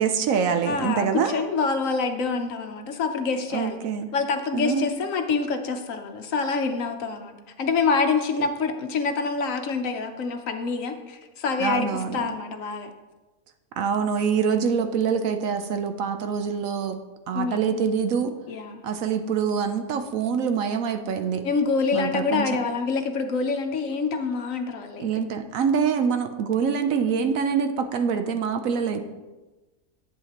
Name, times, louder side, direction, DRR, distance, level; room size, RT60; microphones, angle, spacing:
voice 1, 0.0-1.4 3.5-4.1 4.5-4.9 11.6-12.4 13.8-17.0 17.3-18.3 18.8-21.4 21.9-22.4 25.0-29.0, right 6 dB, 70° right, 7 dB, 1.0 m, -25 dB
voice 2, 0.6-3.8 4.1-12.9 17.3-17.8 18.5-18.8 21.4-25.1, left 4 dB, 65° left, 6 dB, 1.1 m, -26 dB
11.0 x 8.2 x 2.9 m, 1.2 s
omnidirectional pair, 1.6 m